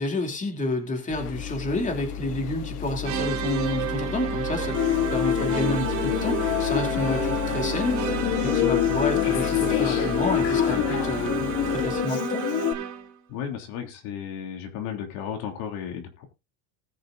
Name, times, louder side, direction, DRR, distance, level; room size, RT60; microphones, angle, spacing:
voice 1, 0.0-4.8 5.1-8.0 8.4-12.4, left 2 dB, 15° left, 3 dB, 2.9 m, -30 dB
sound 1, 1.1-12.0, left 9 dB, 85° left, 1.5 m, -31 dB
sound 2, 3.0-13.1, right 9 dB, 40° right, 2.9 m, -31 dB
Human voice, 4.7-12.7, left 12 dB, 35° left, 1.2 m, -27 dB
voice 2, 13.3-16.2, left 8 dB, 55° left, 4 dB, 3.3 m, -34 dB
20.0 x 6.7 x 2.6 m, 0.26 s
supercardioid pair, 140°, 45 cm